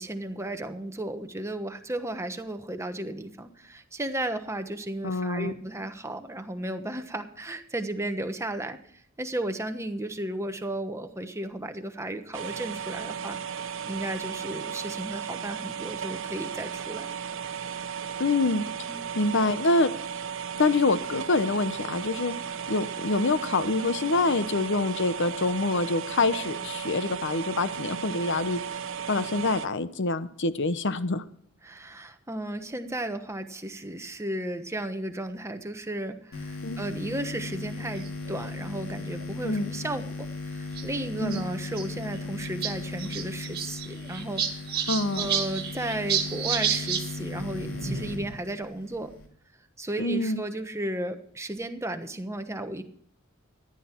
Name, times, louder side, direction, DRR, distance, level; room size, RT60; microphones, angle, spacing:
voice 1, 0.0-17.1 18.9-19.1 31.6-44.9 45.2-49.1 49.8-52.8, right 1 dB, 15° right, 7 dB, 1.1 m, -34 dB
voice 2, 5.0-5.5 18.2-18.6 19.1-19.9 20.6-22.3 22.7-28.6 29.1-31.2 36.6-36.8 39.4-39.7 41.2-41.4 44.9-45.3 50.0-50.4, left 3 dB, 60° left, 13 dB, 0.9 m, -26 dB
sound 1, 12.3-29.7, right 7 dB, 65° right, 0.9 m, -35 dB
sound 2, 36.3-49.3, left 3 dB, 75° left, 2.6 m, -37 dB
sound 3, 38.0-38.3 39.2-39.3 39.6-39.7 40.8-40.9 41.2-41.8 42.2-42.3 42.4-42.7 43.0-47.0 47.4-48.4, right 7 dB, 50° right, 2.1 m, -30 dB
14.5 x 11.0 x 4.5 m, 0.64 s
head